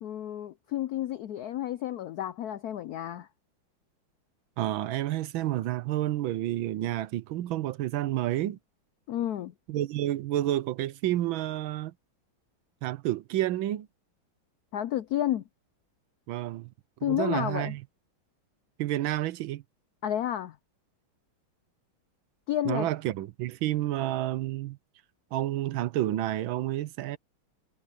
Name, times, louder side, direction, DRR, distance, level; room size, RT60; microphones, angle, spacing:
voice 1, 0.0-3.3 9.1-9.5 14.7-15.4 17.0-17.7 20.0-20.6 22.5-22.9, left 12 dB, 85° left, 0.8 m, -31 dB
voice 2, 4.6-8.6 9.7-11.9 12.8-13.9 16.3-16.7 17.0-17.8 18.8-19.6 22.6-24.8 25.3-27.2, right 14 dB, 75° right, 1.5 m, -30 dB
omnidirectional pair, 2.3 m